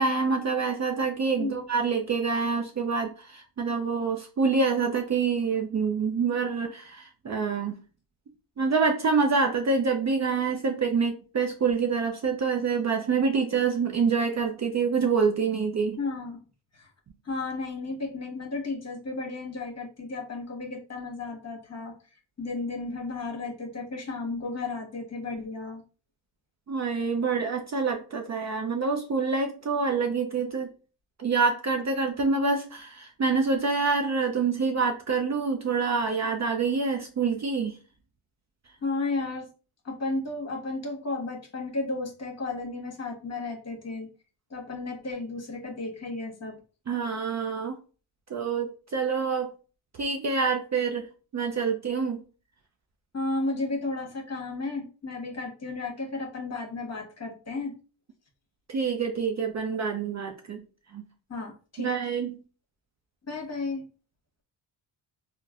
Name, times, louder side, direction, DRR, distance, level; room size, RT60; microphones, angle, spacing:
voice 1, 0.0-7.8 8.6-16.0 26.7-30.7 31.2-37.7 46.9-47.7 48.3-49.5 50.0-51.1 51.3-52.2 58.7-60.6 60.9-61.0 61.8-62.4, right 5 dB, 35° right, 3 dB, 0.5 m, -26 dB
voice 2, 16.0-16.4 16.7-16.9 17.2-21.9 22.4-25.8 38.8-39.5 39.8-44.1 44.5-46.6 53.1-57.8 61.3-61.9 63.3-63.8, left 3 dB, 30° left, 1 dB, 1.2 m, -33 dB
3.8 x 2.2 x 2.4 m, 0.36 s
cardioid pair, 80°, 50 cm